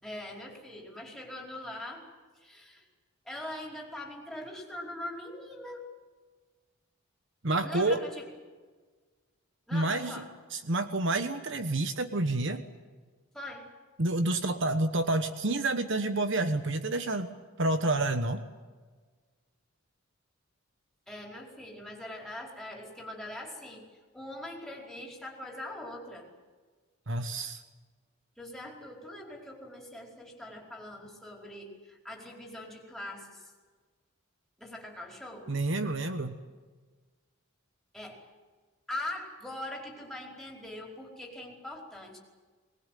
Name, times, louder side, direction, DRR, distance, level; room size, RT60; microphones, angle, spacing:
voice 1, 0.0-2.0 2.3-2.8 3.3-5.9 7.6-8.3 9.7-10.3 13.3-13.6 21.1-23.8 24.1-26.3 28.4-33.5 34.6-35.5 37.9-38.2 38.9-42.2, left 1 dB, ahead, -1 dB, 4.8 m, -42 dB
voice 2, 7.4-8.0 9.7-10.2 10.5-12.6 14.0-17.3 17.6-18.4 27.1-27.6 35.5-36.4, right 2 dB, 60° right, 9 dB, 1.2 m, -29 dB
22.5 x 20.5 x 9.3 m, 1.4 s
head